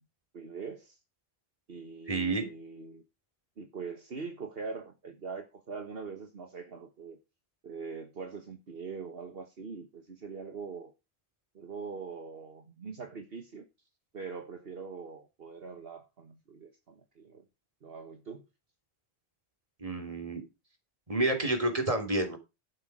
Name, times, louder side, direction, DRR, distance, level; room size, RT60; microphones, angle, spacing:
voice 1, 0.3-1.0 1.7-3.0 3.6-7.2 7.6-10.9 11.5-13.7 14.1-17.4 17.8-18.4, right 5 dB, 65° right, 1.6 m, -42 dB
voice 2, 2.1-2.5 19.8-20.4 21.1-22.4, right 2 dB, 35° right, 3.6 m, -29 dB
11.5 x 8.7 x 5.0 m
omnidirectional pair, 1.1 m